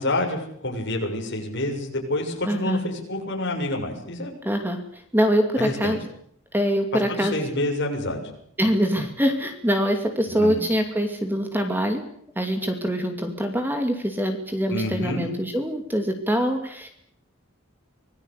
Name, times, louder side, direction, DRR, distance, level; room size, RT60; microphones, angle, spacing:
voice 1, 0.0-4.3 5.6-5.9 6.9-8.2 10.3-10.6 14.7-15.3, left 1 dB, 55° left, 2 dB, 6.9 m, -28 dB
voice 2, 2.5-2.8 4.4-4.8 5.1-6.0 6.5-7.4 8.6-12.0 12.4-16.9, equal, 10° right, 5 dB, 2.5 m, -24 dB
25.5 x 19.5 x 8.3 m, 0.68 s
head